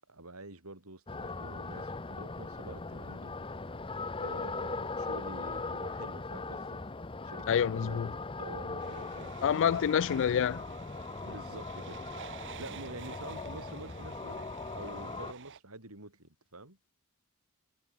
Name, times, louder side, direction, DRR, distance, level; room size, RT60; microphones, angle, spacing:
voice 1, 0.1-3.8 4.2-6.8 7.2-9.6 11.2-12.0 12.6-16.8, right 2 dB, 75° right, 6.0 m, -48 dB
sound 1, 1.1-15.3, left 3 dB, 25° left, 0.8 m, -40 dB
voice 2, 7.5-8.1 9.4-10.6, left 8 dB, 55° left, 0.3 m, -27 dB
sound 2, 8.8-15.6, right 7 dB, 55° right, 1.0 m, -49 dB
head